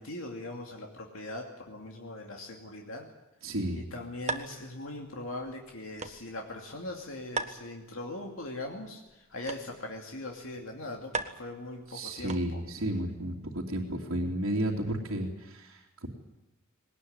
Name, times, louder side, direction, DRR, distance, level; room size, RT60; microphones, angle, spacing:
voice 1, 0.0-3.1 3.8-12.6, left 2 dB, 70° left, 1 dB, 2.6 m, -40 dB
voice 2, 3.4-3.9 11.9-16.1, right 1 dB, 80° right, -4 dB, 2.9 m, -32 dB
sound 1, 3.5-12.8, right 4 dB, 35° right, 1.4 m, -42 dB
20.5 x 19.0 x 9.7 m, 0.98 s
head